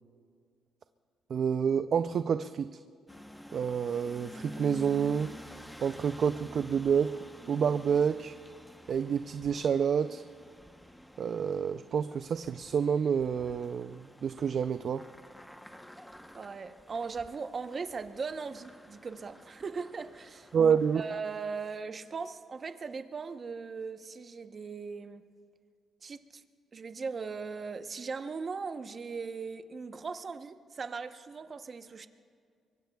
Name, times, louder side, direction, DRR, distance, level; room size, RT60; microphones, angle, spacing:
voice 1, 1.3-2.7 3.5-5.4 5.8-7.2 7.5-8.3 8.9-10.2 11.2-15.0 20.5-21.0, right 7 dB, 55° right, 11 dB, 0.4 m, -28 dB
sound 1, 3.1-21.2, equal, 5° left, 0.9 m, -50 dB
voice 2, 16.3-25.3 26.0-26.4 26.7-32.1, right 5 dB, 40° right, 9 dB, 0.8 m, -39 dB
24.5 x 23.0 x 2.3 m, 2.2 s
cardioid pair, 90°, 0 cm